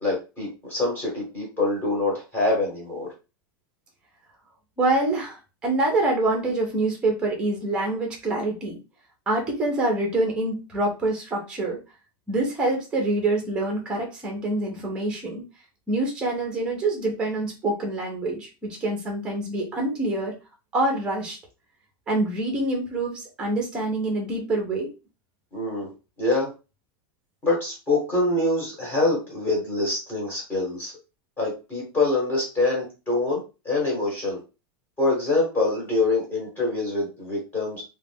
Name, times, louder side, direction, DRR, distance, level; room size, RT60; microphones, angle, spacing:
voice 1, 0.0-3.1 25.5-25.9 26.2-26.5 27.4-30.9 31.4-34.4 35.0-37.8, left 2 dB, 15° left, -3 dB, 1.0 m, -25 dB
voice 2, 4.8-8.8 9.3-11.8 12.3-15.4 15.9-20.3 20.7-21.4 22.1-24.9, right 2 dB, 10° right, 1 dB, 0.6 m, -26 dB
2.4 x 2.2 x 3.3 m, 0.30 s
supercardioid pair, 175°, 12 cm